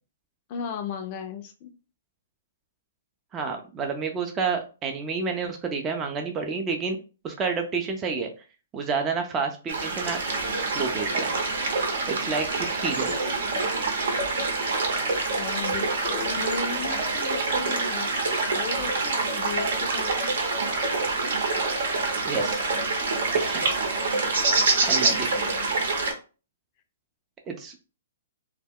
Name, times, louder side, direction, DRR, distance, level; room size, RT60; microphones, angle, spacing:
voice 1, 0.5-1.7 15.4-18.1 18.5-20.3 25.1-25.7, left 6 dB, 40° left, 6 dB, 0.4 m, -36 dB
voice 2, 3.3-7.0 7.2-8.3 8.7-10.2 10.7-11.3 12.1-13.1 22.2-22.6 23.4-23.6 24.9-25.5 27.5-27.8, right 5 dB, 20° right, 3 dB, 0.4 m, -29 dB
sound 1, 9.7-26.1, right 3 dB, 70° right, 0.8 m, -26 dB
2.1 x 2.1 x 3.5 m, 0.34 s
hypercardioid pair, 140°, 0 cm